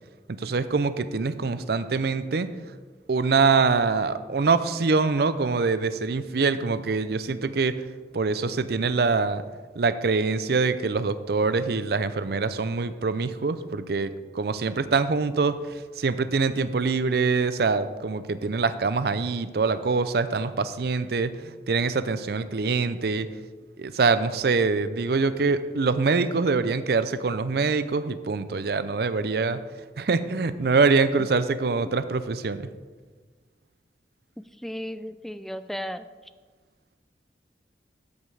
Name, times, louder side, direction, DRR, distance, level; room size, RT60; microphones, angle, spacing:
voice 1, 0.3-2.5 3.1-7.8 8.1-9.4 9.8-23.3 23.8-29.6 30.0-32.7, right 4 dB, 60° right, 13 dB, 0.5 m, -24 dB
voice 2, 34.4-36.1, equal, ahead, 11 dB, 0.3 m, -35 dB
13.0 x 5.3 x 4.8 m, 1.4 s
head